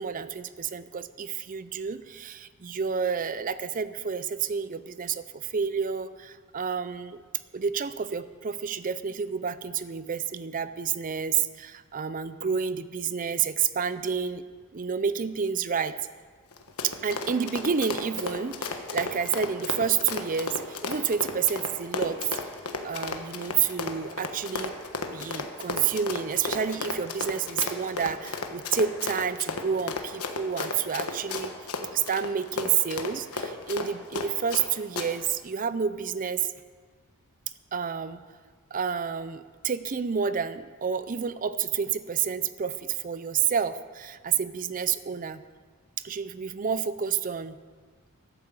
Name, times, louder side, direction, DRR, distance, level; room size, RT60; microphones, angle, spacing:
voice 1, 0.0-7.2 7.5-14.4 14.7-16.0 16.8-22.4 22.8-24.7 25.1-31.5 31.9-36.5 37.7-38.2 38.7-45.4 46.0-47.6, right 7 dB, 35° right, 14 dB, 0.5 m, -29 dB
Run, 16.5-34.7 35.0-35.1, left 4 dB, 75° left, 1.2 m, -33 dB
12.0 x 9.0 x 7.4 m, 1.5 s
head